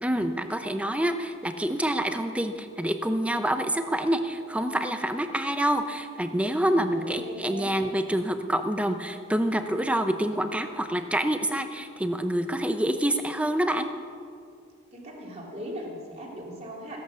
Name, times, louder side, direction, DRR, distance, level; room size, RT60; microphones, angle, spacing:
voice 1, 0.0-13.9, right 1 dB, 5° right, 8 dB, 0.7 m, -27 dB
voice 2, 6.7-7.9 14.9-17.0, right 1 dB, 30° right, -2 dB, 3.0 m, -39 dB
16.0 x 11.0 x 7.1 m, 2.3 s
head